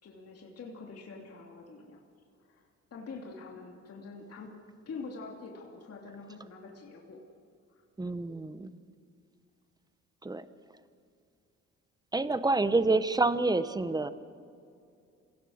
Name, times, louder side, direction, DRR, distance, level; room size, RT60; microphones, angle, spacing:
voice 1, 0.0-2.0 2.5-2.6 2.9-4.5 4.9-7.2, left 4 dB, 55° left, 0 dB, 2.9 m, -45 dB
voice 2, 8.0-8.7 10.2-10.5 12.1-14.1, right 3 dB, 15° right, 13 dB, 1.0 m, -27 dB
28.0 x 17.0 x 6.5 m, 2.5 s
cardioid pair, 90°, 30 cm